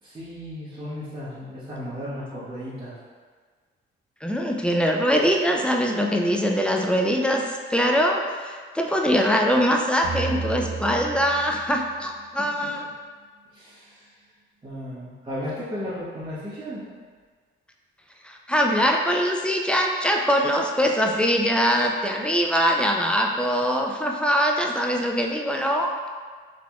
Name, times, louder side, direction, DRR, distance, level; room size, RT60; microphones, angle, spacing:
voice 1, 0.0-3.0 12.4-12.5 13.5-14.2 14.6-16.8, equal, 25° right, -14 dB, 1.2 m, -35 dB
voice 2, 4.2-12.8 18.2-25.9, equal, 5° left, 1 dB, 0.3 m, -22 dB
sound 1, 10.0-13.3, right 5 dB, 80° right, 0.6 m, -34 dB
3.8 x 2.9 x 2.4 m, 1.5 s
cardioid pair, 90°, 20 cm